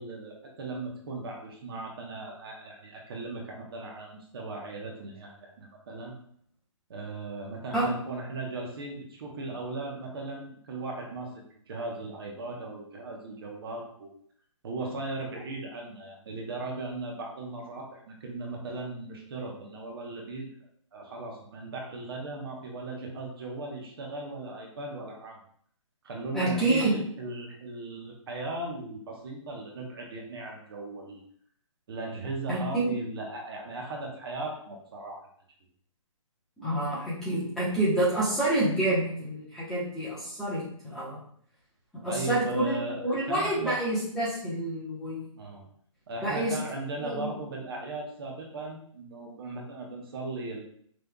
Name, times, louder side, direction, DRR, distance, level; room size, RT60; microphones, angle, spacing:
voice 1, 0.0-6.2 6.9-11.3 11.7-14.1 14.6-20.5 20.9-25.4 26.0-31.2 31.9-35.2 42.0-43.8 45.3-45.6 46.1-50.6, right 2 dB, 45° right, 0 dB, 1.0 m, -37 dB
voice 2, 26.3-26.9 32.5-32.9 36.6-41.2 42.0-45.3 46.2-46.5 47.0-47.3, right 1 dB, 5° left, -10 dB, 0.9 m, -28 dB
5.3 x 3.3 x 2.2 m, 0.62 s
hypercardioid pair, 160°, 17 cm